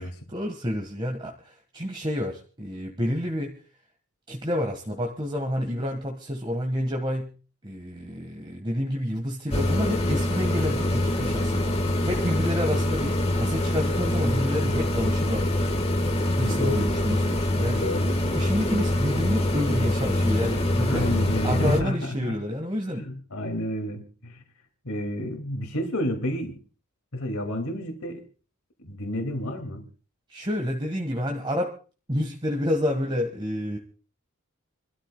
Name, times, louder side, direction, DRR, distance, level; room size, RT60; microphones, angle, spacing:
voice 1, 0.0-3.5 4.3-7.3 7.6-11.7 12.1-15.6 16.4-17.8 18.3-23.1 30.3-31.7 32.1-33.8, equal, 20° right, 2 dB, 1.5 m, -29 dB
sound 1, 9.5-21.8, left 1 dB, 30° left, 1.5 m, -25 dB
voice 2, 16.4-17.0 17.7-18.4 20.9-22.4 23.0-24.4 24.8-26.6 27.1-28.3 28.8-29.8, left 1 dB, 80° left, 4 dB, 2.3 m, -30 dB
28.5 x 13.0 x 2.3 m, 0.36 s
head